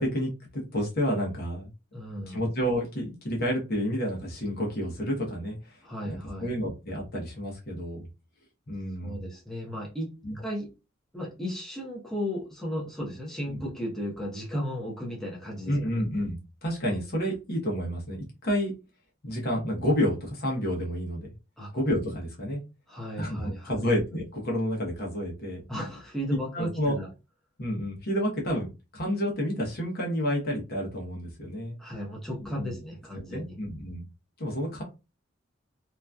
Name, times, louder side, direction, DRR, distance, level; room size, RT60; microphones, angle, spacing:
voice 1, 0.0-1.7 2.3-5.8 6.0-8.1 8.7-9.3 10.2-10.4 13.5-13.6 15.7-18.7 19.2-21.3 21.7-22.6 23.2-25.6 26.5-27.0 27.6-31.8 32.6-32.8 33.3-34.1 34.4-34.8, equal, 55° left, -1 dB, 1.0 m, -30 dB
voice 2, 1.9-2.5 5.8-6.5 9.0-10.7 11.1-16.0 21.6-21.7 22.9-23.9 25.7-27.1 31.8-33.6, equal, 5° left, -4 dB, 0.8 m, -35 dB
2.9 x 2.5 x 2.3 m, 0.28 s
head